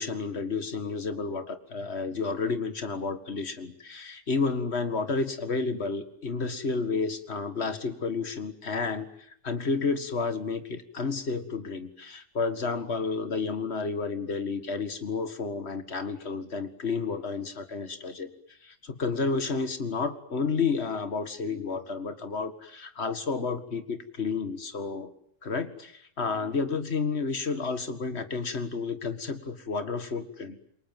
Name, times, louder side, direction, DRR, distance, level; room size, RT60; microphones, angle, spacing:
voice 1, 0.0-18.3 18.6-25.1 25.4-30.7, left 4 dB, 55° left, 10 dB, 2.2 m, -31 dB
28.0 x 22.5 x 9.2 m, 0.66 s
omnidirectional pair, 1.3 m